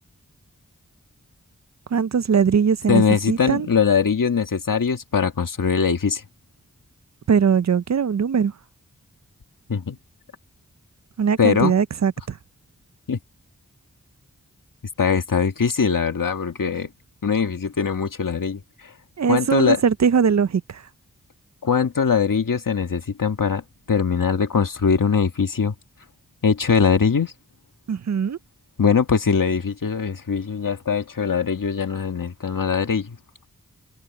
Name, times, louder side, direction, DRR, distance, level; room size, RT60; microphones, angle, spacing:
voice 1, 1.9-3.7 7.3-8.5 11.2-12.4 19.2-20.8 27.9-28.4, right 6 dB, 60° right, 0.6 m, -20 dB
voice 2, 2.9-6.2 9.7-10.0 11.4-11.7 13.1-13.2 15.0-16.9 17.2-18.9 19.3-19.8 21.6-25.7 26.4-27.3 28.8-33.2, left 6 dB, 80° left, 1.8 m, -21 dB
wide cardioid pair, 50°, 32 cm